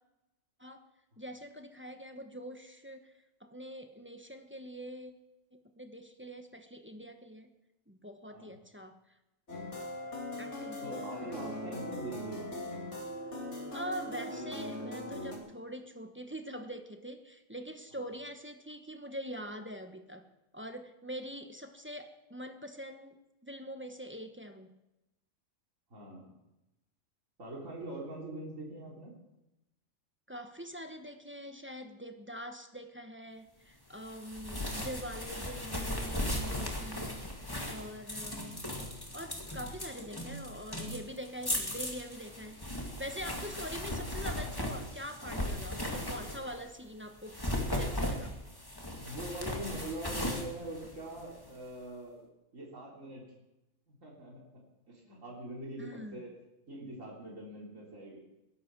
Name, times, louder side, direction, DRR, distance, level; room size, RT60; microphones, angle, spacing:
voice 1, 1.2-3.1 3.4-5.1 5.5-7.5 7.9-9.0 10.4-11.4 13.7-20.3 20.5-24.8 30.3-38.6 39.1-48.4 55.8-56.2, equal, 10° right, 6 dB, 1.1 m, -44 dB
sound 1, 9.5-15.4, left 1 dB, 60° left, 3.0 m, -40 dB
voice 2, 10.8-12.7 17.9-18.1 25.9-26.3 27.4-29.1 49.0-52.3 52.5-53.3 53.9-54.4 54.9-56.3 56.7-58.2, right 1 dB, 70° right, -3 dB, 3.8 m, -43 dB
sound 2, 34.0-46.7 47.2-51.5, left 1 dB, 15° left, 2.2 m, -37 dB
20.5 x 11.5 x 4.7 m, 0.94 s
omnidirectional pair, 1.4 m